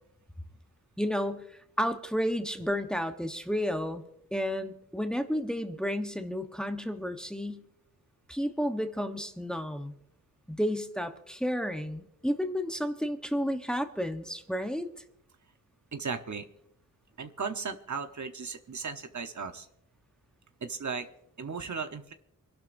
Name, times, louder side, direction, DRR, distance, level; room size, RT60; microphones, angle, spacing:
voice 1, 1.0-1.4 1.8-4.0 4.3-7.6 8.3-9.9 10.5-14.9, equal, ahead, 6 dB, 1.0 m, -31 dB
voice 2, 15.9-16.5 17.2-19.7 20.6-21.1 21.4-22.1, right 5 dB, 60° right, 7 dB, 1.0 m, -36 dB
26.5 x 11.5 x 2.6 m, 0.77 s
wide cardioid pair, 90°, 33 cm